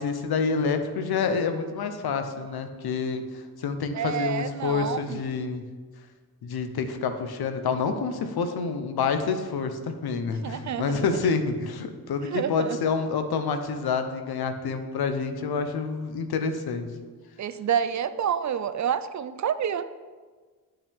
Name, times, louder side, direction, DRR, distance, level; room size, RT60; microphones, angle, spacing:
voice 1, 0.0-5.6 6.4-16.9, left 5 dB, 90° left, 7 dB, 0.8 m, -28 dB
voice 2, 3.9-5.2 10.4-11.1 12.2-12.8 17.4-19.8, right 8 dB, 50° right, 13 dB, 0.5 m, -28 dB
10.5 x 5.6 x 3.5 m, 1.4 s
cardioid pair, 80°, 36 cm